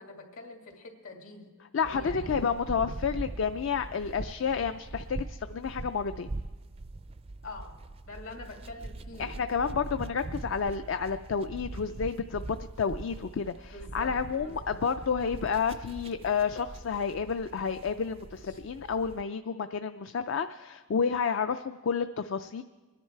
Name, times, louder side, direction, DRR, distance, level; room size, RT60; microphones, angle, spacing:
voice 1, 0.0-1.5 1.8-2.6 7.4-7.7 8.0-9.4 13.7-14.8 18.4-18.6, left 2 dB, 75° left, 2 dB, 2.4 m, -45 dB
voice 2, 1.7-6.3 9.2-12.4 12.8-22.6, left 6 dB, 60° left, 10 dB, 0.4 m, -30 dB
sound 1, 1.8-19.2, right 2 dB, 25° right, 0.3 m, -42 dB
24.5 x 10.5 x 4.5 m, 1.3 s
head